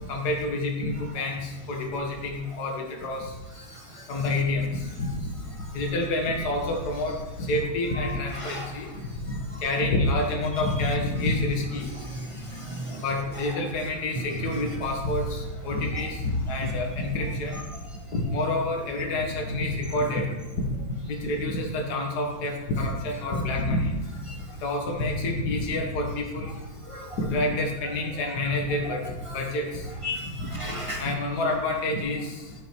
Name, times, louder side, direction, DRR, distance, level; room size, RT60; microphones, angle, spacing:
voice 1, 0.1-3.4 4.1-5.1 5.5-11.9 13.0-17.6 18.1-20.3 21.0-24.0 24.6-26.5 27.2-29.1 29.3-29.9 30.2-30.3 31.0-32.5, left 2 dB, 55° left, 1 dB, 1.9 m, -28 dB
voice 2, 8.4-8.7 12.1-12.3 12.5-13.0 26.9-27.1 29.3-29.4 30.0-31.1, left 1 dB, 25° right, 0 dB, 0.7 m, -34 dB
8.8 x 7.8 x 4.6 m, 1.1 s
omnidirectional pair, 2.2 m